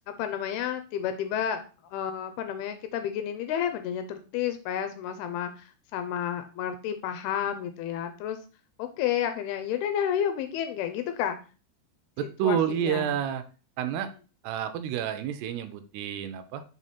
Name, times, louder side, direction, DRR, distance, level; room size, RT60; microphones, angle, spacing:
voice 1, 0.1-8.4 8.8-11.4 12.4-13.1, left 9 dB, 80° left, 8 dB, 2.4 m, -31 dB
voice 2, 12.2-13.4 13.8-14.1 14.4-16.6, right 9 dB, 80° right, 9 dB, 2.6 m, -29 dB
5.5 x 4.7 x 4.1 m, 0.35 s
omnidirectional pair, 4.8 m